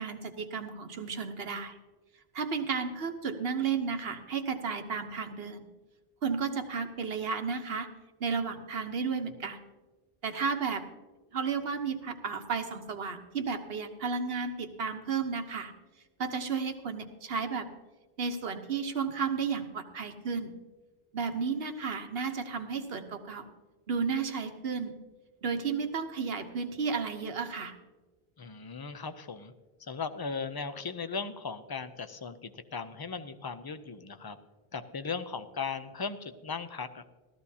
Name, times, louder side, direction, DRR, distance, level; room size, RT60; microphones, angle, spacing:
voice 1, 0.0-1.8 2.3-5.7 6.2-7.9 8.2-9.6 10.2-10.8 11.3-15.7 16.2-17.7 18.2-20.5 21.1-23.5 23.9-25.0 25.4-27.7, right 5 dB, 70° right, 7 dB, 1.2 m, -33 dB
voice 2, 28.4-29.5 29.8-34.4 34.7-37.1, left 5 dB, 30° left, 11 dB, 0.4 m, -37 dB
17.0 x 13.5 x 2.8 m, 1.2 s
omnidirectional pair, 1.0 m